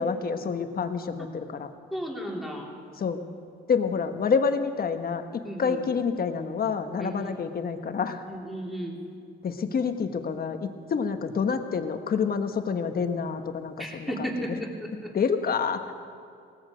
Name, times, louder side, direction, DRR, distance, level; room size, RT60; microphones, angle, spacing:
voice 1, 0.0-1.7 3.0-3.2 3.7-8.2 9.4-14.1 15.1-15.9, left 5 dB, 50° left, 7 dB, 1.3 m, -28 dB
voice 2, 1.9-2.7 5.4-5.8 7.0-7.4 8.3-9.0 13.8-15.1, equal, ahead, -1 dB, 3.2 m, -34 dB
19.0 x 14.0 x 5.2 m, 2.4 s
cardioid pair, 90°, 20 cm